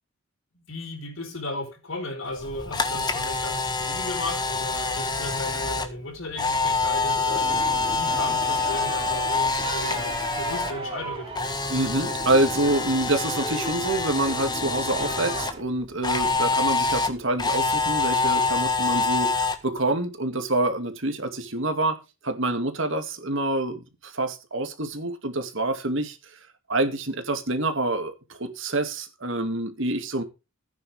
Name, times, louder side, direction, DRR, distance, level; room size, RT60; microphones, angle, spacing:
voice 1, 0.5-7.5 7.9-11.8, left 2 dB, 65° left, 4.6 m, -35 dB
Camera, 2.4-10.7 11.0-15.5 16.0-19.6, left 3 dB, 20° left, 1.5 m, -26 dB
sound 1, 7.3-15.6, right 2 dB, 25° right, 2.9 m, -37 dB
voice 2, 11.7-22.0 22.2-26.2 26.7-30.2, right 2 dB, 60° right, 2.3 m, -26 dB
15.5 x 9.9 x 3.5 m
head